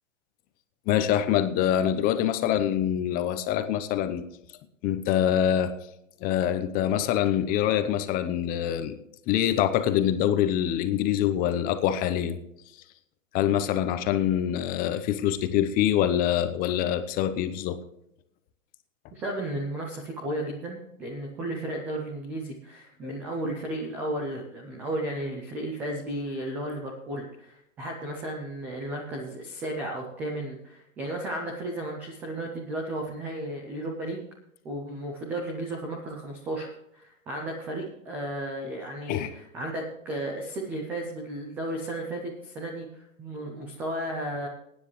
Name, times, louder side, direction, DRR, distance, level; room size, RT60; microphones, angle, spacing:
voice 1, 0.9-4.2 4.8-5.7 6.2-9.0 9.3-12.4 13.3-17.8 23.0-23.1 39.1-39.3, left 10 dB, 20° left, 10 dB, 0.8 m, -25 dB
voice 2, 19.1-34.3 34.6-44.5, right 1 dB, 5° right, 0 dB, 0.3 m, -34 dB
19.5 x 10.0 x 3.2 m, 0.79 s
hypercardioid pair, 135°, 42 cm